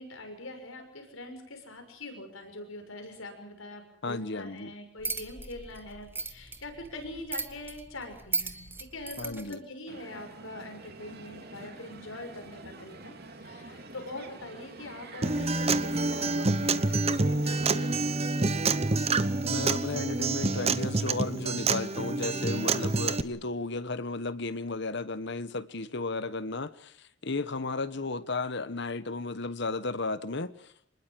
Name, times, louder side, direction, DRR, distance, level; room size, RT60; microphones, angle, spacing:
voice 1, 0.0-13.1 13.4-18.6, left 1 dB, 85° left, 6.4 m, -43 dB
voice 2, 4.0-4.7 9.2-9.6 19.4-30.5, left 3 dB, 60° left, 1.2 m, -34 dB
sound 1, 5.0-9.5, right 4 dB, 10° right, 1.6 m, -37 dB
Crowd, 9.9-18.2, right 2 dB, 50° right, 3.1 m, -46 dB
Acoustic guitar, 15.2-23.2, right 3 dB, 30° right, 1.0 m, -27 dB
25.5 x 20.5 x 7.6 m
head